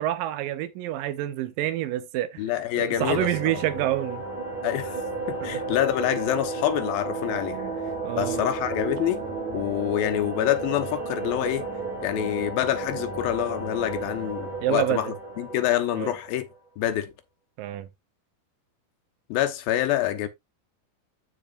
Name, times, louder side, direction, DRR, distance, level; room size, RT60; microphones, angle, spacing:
voice 1, 0.0-2.4 2.8-4.2 7.5-7.7 8.0-8.4 14.6-15.0 16.0-16.1 17.6-17.9, right 13 dB, 75° right, 2.2 m, -27 dB
voice 2, 2.4-3.6 4.6-5.0 5.3-7.6 8.2-9.3 9.5-11.7 12.0-16.5 16.8-17.1 19.3-20.3, left 12 dB, 80° left, 2.7 m, -26 dB
sound 1, 3.0-16.5, right 3 dB, 50° right, 5.4 m, -33 dB
14.0 x 4.7 x 2.4 m
omnidirectional pair, 4.2 m